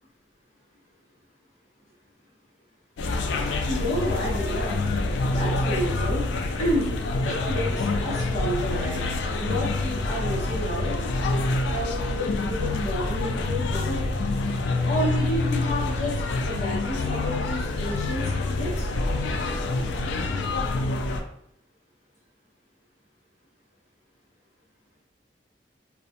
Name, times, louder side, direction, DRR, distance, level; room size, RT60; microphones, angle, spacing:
sound 1, 3.0-21.2, left 2 dB, 80° left, 0.3 m, -26 dB
voice 1, 3.7-4.8 5.3-6.2 6.6-6.9 7.2-9.0 9.3-10.9 11.6-14.1 14.8-16.2 16.4-18.9, equal, 40° left, -6 dB, 0.8 m, -30 dB
2.3 x 2.1 x 2.8 m, 0.71 s
head